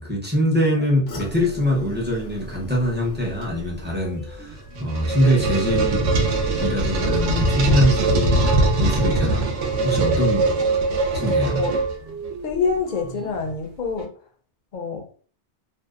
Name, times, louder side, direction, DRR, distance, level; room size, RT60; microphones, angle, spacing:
voice 1, 0.0-6.1 6.6-8.5 8.8-9.5 9.8-10.5 11.1-11.6, equal, 15° right, 0.4 m, -23 dB
sound 1, 1.1-6.3 6.6-7.0 7.4-7.5, equal, 90° left, 1.1 m, -40 dB
sound 2, 3.2-13.5, right 3 dB, 50° right, 0.9 m, -41 dB
sound 3, 4.5-12.3, right 2 dB, 90° right, 0.9 m, -21 dB
voice 2, 12.4-14.1 14.7-15.1, left 5 dB, 60° left, 0.5 m, -26 dB
2.6 x 2.0 x 2.3 m
omnidirectional pair, 1.2 m